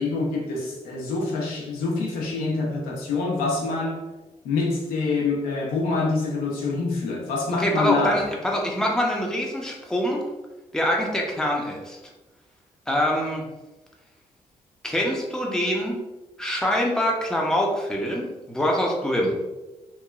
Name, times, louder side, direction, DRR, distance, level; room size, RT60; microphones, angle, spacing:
voice 1, 0.0-4.0 4.4-8.2, left 3 dB, 85° left, -2 dB, 0.6 m, -26 dB
voice 2, 7.6-10.2 10.7-12.0 12.9-13.4 14.8-16.0 16.4-19.3, equal, 5° left, -1 dB, 0.6 m, -24 dB
3.0 x 2.1 x 2.3 m, 1.1 s
supercardioid pair, 55°, 15 cm